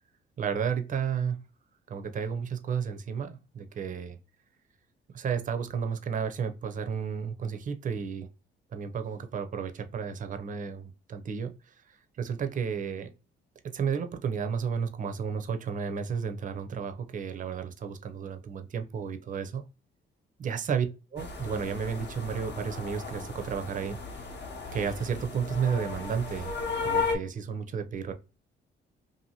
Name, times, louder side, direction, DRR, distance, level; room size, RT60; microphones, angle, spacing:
voice 1, 0.4-1.4 1.9-4.2 5.1-8.3 8.7-11.5 12.2-13.1 13.6-19.6 20.4-20.9 21.1-24.2 24.7-26.5 26.8-28.1, right 6 dB, 40° right, 0.5 m, -32 dB
sound 1, 21.2-27.2, left 4 dB, 60° left, 0.7 m, -35 dB
2.6 x 2.5 x 2.8 m
cardioid pair, 90°, 20 cm